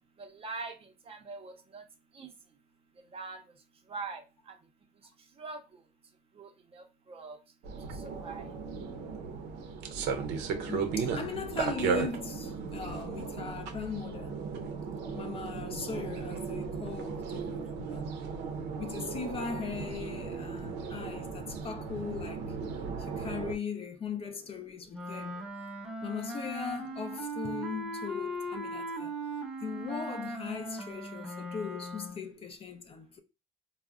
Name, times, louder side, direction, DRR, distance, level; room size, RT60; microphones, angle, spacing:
voice 1, 0.4-0.7 1.1-1.8 2.2-2.3 3.1-3.4 3.9-4.2 5.4-5.6 6.4-6.8 7.1-7.4 8.2-8.4, right 4 dB, 35° right, 0.6 m, -41 dB
sound 1, 7.6-23.6, right 5 dB, 90° right, 0.5 m, -36 dB
voice 2, 10.7-14.5 15.1-18.1 18.8-22.4 23.0-25.4 26.0-29.2 29.6-33.2, left 6 dB, 35° left, 0.4 m, -39 dB
Wind instrument woodwind instrument, 24.9-32.3, right 1 dB, 5° right, 0.8 m, -39 dB
3.4 x 2.0 x 2.3 m
cardioid pair, 110°, 17 cm